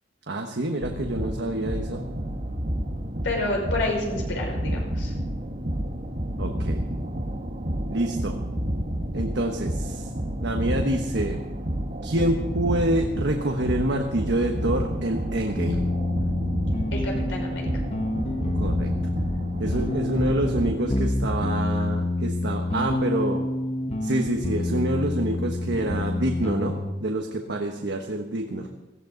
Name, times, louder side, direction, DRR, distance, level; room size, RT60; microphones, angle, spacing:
voice 1, 0.3-2.0 6.4-6.9 7.9-8.4 9.1-10.1 10.4-11.4 12.0-15.9 18.5-18.9 19.6-23.5 24.0-28.7, right 1 dB, 65° right, 3 dB, 1.2 m, -27 dB
sound 1, 0.8-20.7, equal, 40° right, 1.5 m, -30 dB
voice 2, 3.2-5.1 16.9-17.7, left 2 dB, 80° left, -1 dB, 5.7 m, -29 dB
sound 2, 15.5-26.9, left 1 dB, 35° left, 1.2 m, -28 dB
17.5 x 14.5 x 4.0 m, 1.1 s
head